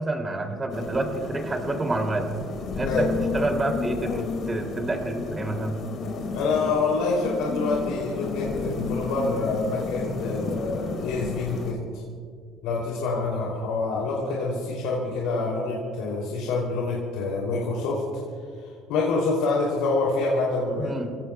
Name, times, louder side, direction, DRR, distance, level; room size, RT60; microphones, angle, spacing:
voice 1, 0.0-2.3 2.8-3.1 3.3-5.8 20.8-21.2, right 2 dB, 20° right, 3 dB, 2.7 m, -28 dB
sound 1, 0.7-11.7, left 4 dB, 50° left, 2.3 m, -32 dB
voice 2, 6.3-12.0 12.6-18.0 18.9-20.9, left 3 dB, 80° left, -4 dB, 3.0 m, -26 dB
29.0 x 16.5 x 2.3 m, 2.2 s
cardioid pair, 115°, 0 cm